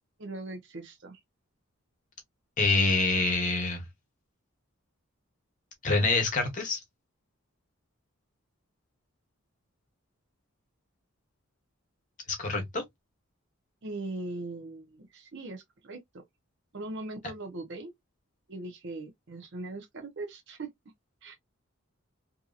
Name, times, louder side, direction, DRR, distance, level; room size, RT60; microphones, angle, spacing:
voice 1, 0.2-1.2 13.8-16.0 16.7-17.9 18.5-20.7 21.2-21.3, right 2 dB, 55° right, 0.6 m, -40 dB
voice 2, 2.6-3.8 5.8-6.8 12.3-12.8, left 3 dB, 35° left, 0.9 m, -26 dB
2.7 x 2.6 x 2.3 m
head